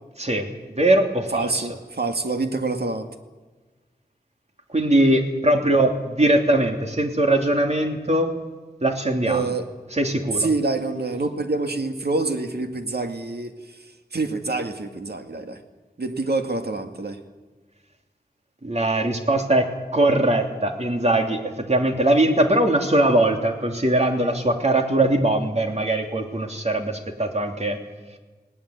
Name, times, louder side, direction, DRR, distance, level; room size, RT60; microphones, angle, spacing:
voice 1, 0.2-1.6 4.7-8.3 8.8-9.5 9.9-10.5 18.6-21.4 21.7-27.8, right 1 dB, 40° right, 3 dB, 3.0 m, -21 dB
voice 2, 1.3-3.1 9.3-9.7 10.4-13.5 14.1-15.6 16.0-17.2, right 3 dB, 75° right, 5 dB, 2.0 m, -26 dB
19.5 x 18.5 x 8.3 m, 1.3 s
wide cardioid pair, 50°, 17 cm